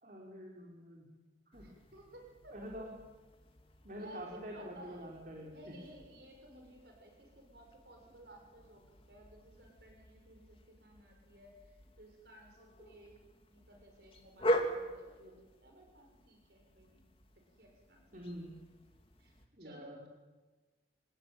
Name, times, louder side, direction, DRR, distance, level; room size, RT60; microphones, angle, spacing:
voice 1, 0.0-1.1 1.5-1.6 2.5-2.9 3.8-5.7 18.1-18.6 19.6-20.1, equal, 45° right, -1 dB, 4.4 m, -46 dB
sound 1, 1.5-19.5, equal, 30° left, 2.7 m, -43 dB
voice 2, 1.6-2.6 4.0-5.1 5.5-13.2 13.5-17.0 17.6-18.3 19.2-20.1, right 1 dB, 60° right, 2 dB, 6.7 m, -56 dB
27.0 x 19.5 x 9.3 m, 1.2 s
head